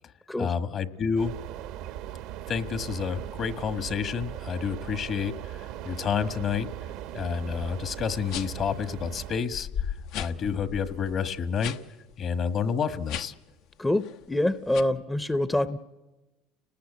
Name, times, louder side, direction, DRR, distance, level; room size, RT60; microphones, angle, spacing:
voice 1, 0.4-1.4 2.5-6.7 7.1-11.7 12.2-13.3, left 6 dB, 45° left, 12 dB, 1.5 m, -29 dB
sound 1, 1.2-9.4, right 12 dB, 70° right, 1.0 m, -39 dB
sound 2, 7.5-7.7 8.3-8.7 9.2-9.3 9.5-11.8 12.1-12.3 13.0-13.5 13.9-14.2 14.7-14.8, left 9 dB, 65° left, 1.0 m, -36 dB
voice 2, 13.8-15.8, left 1 dB, 10° left, 13 dB, 0.8 m, -26 dB
29.5 x 19.5 x 8.4 m, 1.2 s
supercardioid pair, 95°, 0 cm